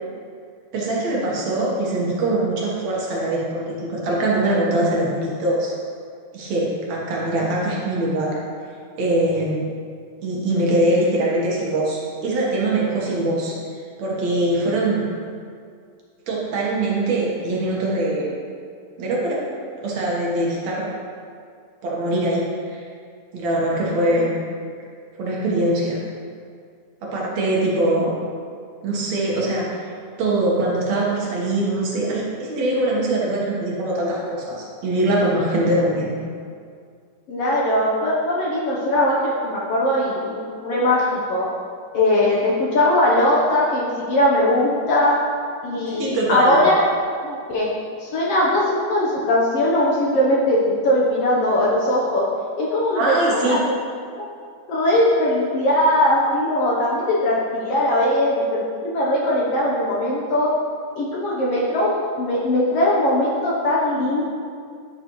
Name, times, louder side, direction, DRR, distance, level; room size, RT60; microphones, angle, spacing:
voice 1, 0.7-5.7 6.3-8.4 9.0-9.7 10.2-13.5 14.0-15.1 16.3-18.3 19.0-19.4 19.8-20.9 21.8-22.8 23.3-24.4 25.2-26.0 27.0-28.1 28.8-29.8 30.2-36.1 45.9-46.6 53.0-53.6, right 1 dB, 65° right, -4 dB, 2.5 m, -22 dB
voice 2, 37.3-41.5 41.9-45.2 45.6-46.9 47.2-47.7 48.0-52.2 52.6-53.8 54.1-54.3 54.7-60.5 61.0-64.2, left 1 dB, 65° left, -5 dB, 1.7 m, -20 dB
12.0 x 6.0 x 3.1 m, 2.2 s
omnidirectional pair, 3.5 m